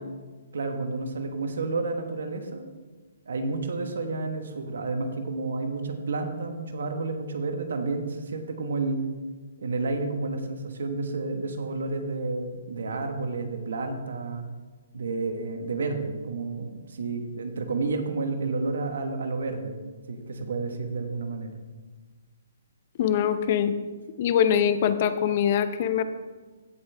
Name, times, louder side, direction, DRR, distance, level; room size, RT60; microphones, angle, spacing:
voice 1, 0.5-2.7 3.3-9.0 9.6-14.4 14.9-21.5, right 3 dB, 75° right, 6 dB, 1.3 m, -30 dB
voice 2, 23.0-23.7 24.2-26.0, left 9 dB, 45° left, 11 dB, 0.7 m, -23 dB
15.5 x 5.4 x 3.5 m, 1.3 s
hypercardioid pair, 145°, 0 cm